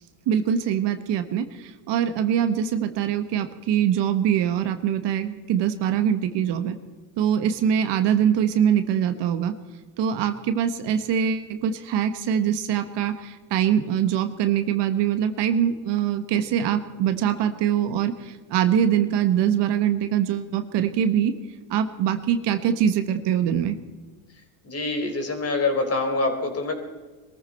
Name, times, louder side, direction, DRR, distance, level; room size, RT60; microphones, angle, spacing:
voice 1, 0.3-6.7 7.2-9.5 10.0-21.4 21.7-23.8, right 9 dB, 60° right, 8 dB, 1.4 m, -23 dB
voice 2, 24.6-26.7, left 3 dB, 30° left, 4 dB, 3.9 m, -25 dB
22.0 x 14.5 x 4.4 m, 1.3 s
supercardioid pair, 95°, 48 cm